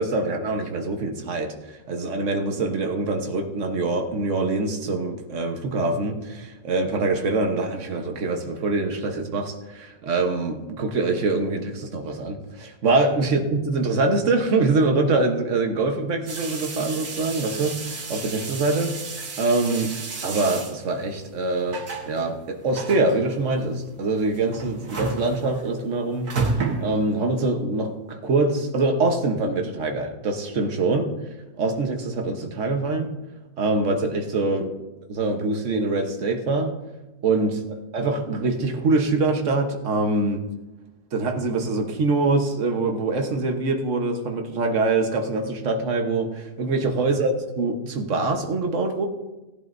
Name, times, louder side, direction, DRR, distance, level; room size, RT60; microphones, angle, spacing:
voice 1, 0.0-18.9 19.4-26.3 26.8-31.1 31.6-33.1 33.6-34.8 35.1-36.7 37.2-37.6 37.9-40.4 41.1-49.1, right 3 dB, 55° right, 4 dB, 1.5 m, -24 dB
sound 1, 16.3-27.4, right 4 dB, 90° right, 2.0 m, -32 dB
18.0 x 11.0 x 2.7 m, 1.1 s
omnidirectional pair, 1.6 m